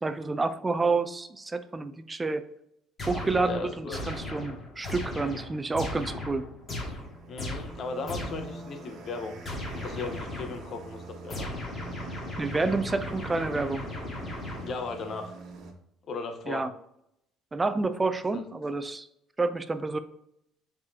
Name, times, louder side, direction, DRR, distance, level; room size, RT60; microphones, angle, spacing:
voice 1, 0.0-2.4 3.1-6.5 12.4-13.8 16.5-16.7 17.5-19.1 19.4-20.0, right 3 dB, 15° right, 11 dB, 0.5 m, -29 dB
sound 1, 3.0-8.6 9.4-10.7 11.3-15.0, left 1 dB, 25° left, 2.2 m, -37 dB
voice 2, 3.4-4.0 7.3-9.4 9.7-11.5 14.6-15.4 16.1-16.7, left 3 dB, 45° left, 6 dB, 1.0 m, -36 dB
sound 2, 6.6-15.7, right 3 dB, 55° right, 1.3 m, -46 dB
7.1 x 5.0 x 2.8 m, 0.77 s
cardioid pair, 130°, 0 cm